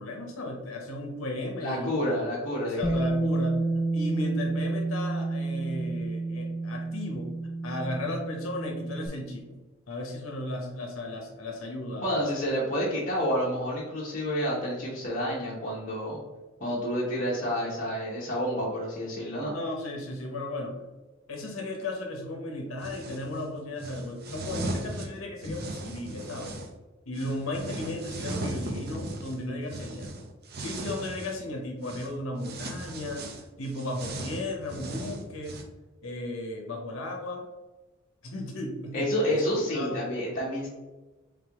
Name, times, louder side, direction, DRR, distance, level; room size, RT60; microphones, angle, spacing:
voice 1, 0.0-1.9 2.6-3.5 3.9-7.3 7.6-9.6 9.9-12.3 19.5-20.8 21.3-26.6 27.1-30.1 30.6-33.3 33.6-35.6 36.0-37.4 38.2-39.4 39.7-40.0, left 1 dB, 80° left, 0 dB, 0.8 m, -35 dB
voice 2, 1.6-3.0 12.0-16.2 16.6-19.5 38.9-40.7, equal, 40° left, -6 dB, 0.9 m, -29 dB
Bass guitar, 2.8-9.1, right 2 dB, 20° left, 0.4 m, -30 dB
sound 1, 22.8-23.3 23.8-26.7 27.1-31.4 31.8-32.1 32.4-35.6, right 2 dB, 50° right, 0.6 m, -37 dB
3.6 x 3.4 x 3.5 m, 1.2 s
head